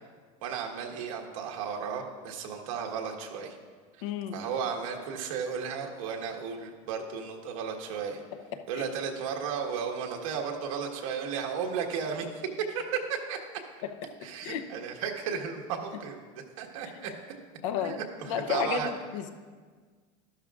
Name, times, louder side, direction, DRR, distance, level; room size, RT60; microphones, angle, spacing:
voice 1, 0.4-3.6 4.0-4.1 4.3-8.2 8.7-13.4 14.2-16.3 16.6-17.1 17.8-18.9, right 6 dB, 80° right, 1 dB, 1.4 m, -34 dB
voice 2, 4.0-4.4 14.4-14.6 17.6-18.0 18.3-19.3, left 9 dB, 70° left, 8 dB, 0.7 m, -31 dB
12.5 x 12.0 x 2.4 m, 1.5 s
supercardioid pair, 175°, 17 cm